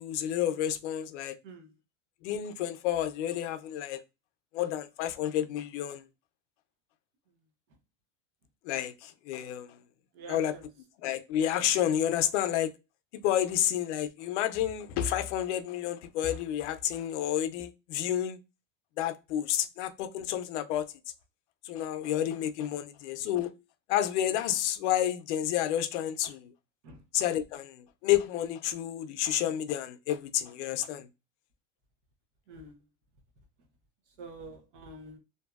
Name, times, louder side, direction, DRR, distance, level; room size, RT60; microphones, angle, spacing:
voice 1, 0.0-1.4 2.2-4.0 4.5-6.0 8.7-9.7 10.3-10.5 11.0-12.7 13.2-18.4 19.0-20.8 21.6-23.5 23.9-26.5 27.1-27.8 28.0-31.1, left 11 dB, 80° left, 0.5 m, -30 dB
voice 2, 1.4-1.7 10.1-10.7 22.7-22.9 26.8-27.0 32.5-32.8 34.2-35.2, right 2 dB, 90° right, 1.0 m, -47 dB
2.6 x 2.6 x 2.3 m
cardioid pair, 175°, 34 cm